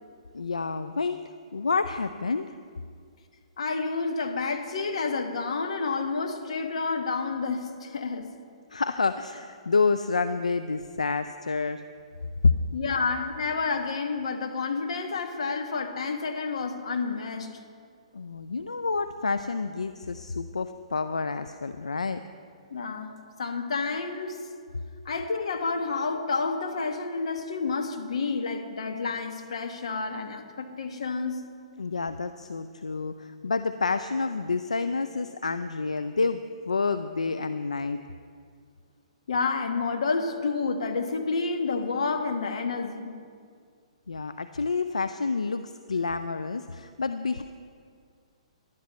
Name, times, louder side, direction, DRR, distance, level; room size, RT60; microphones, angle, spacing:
voice 1, 0.3-1.2 1.5-2.5 8.7-11.8 12.4-12.5 18.1-22.2 31.8-38.0 44.1-47.4, left 4 dB, 85° left, 10 dB, 0.4 m, -28 dB
voice 2, 3.6-8.3 12.7-17.5 22.7-23.1 23.4-24.4 25.0-31.4 39.3-43.2, left 4 dB, 65° left, 5 dB, 1.4 m, -29 dB
19.0 x 11.5 x 3.1 m, 2.2 s
figure-of-eight pair, 125°, 4 cm